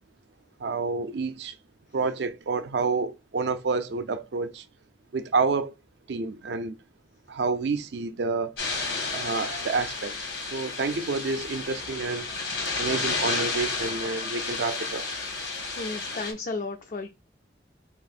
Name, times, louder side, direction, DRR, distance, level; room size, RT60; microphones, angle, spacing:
voice 1, 0.6-1.5 1.9-4.6 5.1-5.7 6.1-6.8 7.3-8.5 9.1-10.1 10.4-12.3 12.8-15.1, right 4 dB, 70° right, 0.4 m, -29 dB
sound 1, 8.6-16.3, left 3 dB, 90° left, 1.7 m, -31 dB
voice 2, 15.8-17.1, left 3 dB, 45° left, 0.4 m, -33 dB
3.2 x 2.9 x 4.2 m
head